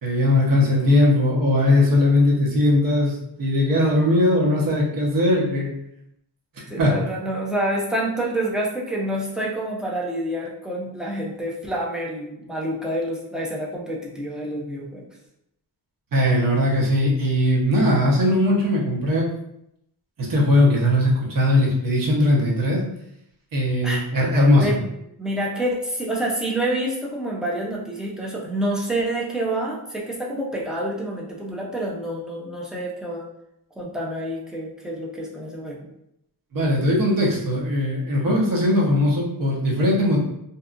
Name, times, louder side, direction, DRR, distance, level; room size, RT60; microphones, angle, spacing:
voice 1, 0.0-5.7 6.8-6.9 16.1-19.3 20.2-22.8 23.5-24.7 36.5-40.2, left 1 dB, 55° right, -3 dB, 0.9 m, -19 dB
voice 2, 6.7-15.0 23.8-24.0 24.6-24.9 25.2-33.3 33.8-35.8, right 1 dB, ahead, -3 dB, 0.5 m, -27 dB
2.7 x 2.3 x 2.4 m, 0.78 s
wide cardioid pair, 120°, 41 cm